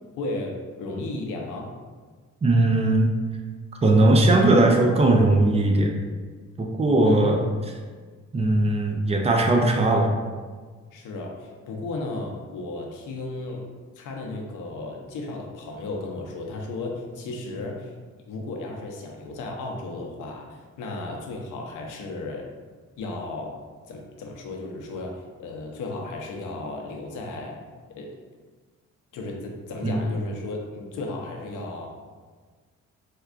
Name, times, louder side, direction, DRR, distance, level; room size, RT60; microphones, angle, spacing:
voice 1, 0.2-1.7 7.0-7.4 10.9-13.7 14.0-17.9 18.3-22.5 23.0-23.6 23.9-27.6 27.9-28.2 29.1-31.9, left 2 dB, 90° left, 1 dB, 0.6 m, -34 dB
voice 2, 2.4-3.1 3.8-5.9 6.6-7.4 8.3-10.1 29.8-30.0, right 2 dB, 20° right, 1 dB, 0.4 m, -19 dB
4.3 x 2.3 x 2.4 m, 1.5 s
cardioid pair, 100°, 30 cm